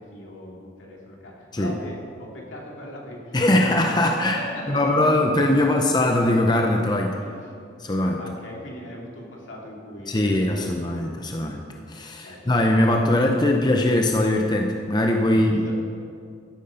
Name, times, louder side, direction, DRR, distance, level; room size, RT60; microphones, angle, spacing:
voice 1, 0.0-5.1 5.6-5.7 7.2-7.7 8.0-11.4 12.2-12.4 15.3-15.7, left 1 dB, 80° left, -2 dB, 2.5 m, -39 dB
voice 2, 3.3-7.2 7.8-8.2 10.1-11.6 11.9-15.7, left 1 dB, 20° left, 2 dB, 0.7 m, -21 dB
13.0 x 8.9 x 5.6 m, 2.3 s
head